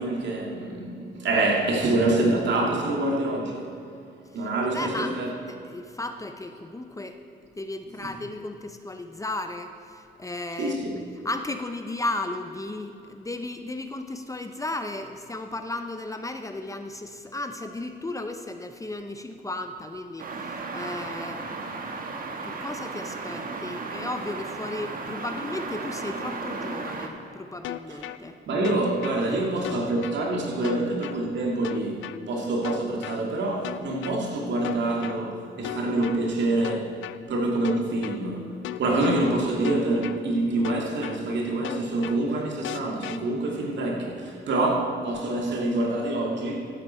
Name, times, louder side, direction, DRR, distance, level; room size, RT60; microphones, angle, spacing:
voice 1, 0.0-3.7 4.3-5.3 8.0-8.1 10.6-11.0 27.9-28.0 28.5-36.9 37.3-46.7, right 2 dB, 65° right, -1 dB, 2.3 m, -26 dB
voice 2, 4.7-5.1 5.5-7.2 7.6-10.8 11.2-21.6 22.0-28.4 29.3-29.4, left 2 dB, 15° left, 7 dB, 0.7 m, -35 dB
sound 1, 20.2-27.1, right 3 dB, 45° right, 1.3 m, -35 dB
sound 2, 27.6-28.2 28.6-29.2 29.6-30.2 30.6-31.2 31.6-32.2 32.6-33.2 33.6-34.2 34.6-35.2 35.6-36.2 36.6-37.2 37.6-38.2 38.6-39.2 39.6-40.2 40.6-41.2 41.6-42.2 42.6-43.2, left 14 dB, 80° left, 0.5 m, -35 dB
15.5 x 8.3 x 4.4 m, 2.6 s
cardioid pair, 90°, 20 cm